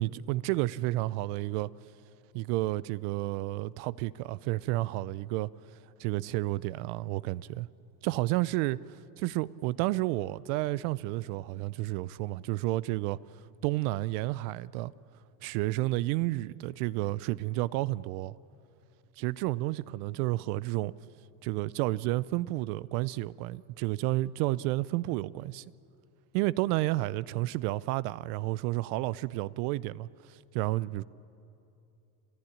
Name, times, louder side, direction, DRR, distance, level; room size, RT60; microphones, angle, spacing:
voice 1, 0.0-1.7 2.3-5.5 6.0-7.7 8.0-8.8 9.2-13.2 13.6-14.9 15.4-18.4 19.2-20.9 21.4-25.6 26.3-31.0, right 18 dB, 65° right, 0.6 m, -31 dB
30.0 x 12.0 x 10.0 m
supercardioid pair, 115°, 49 cm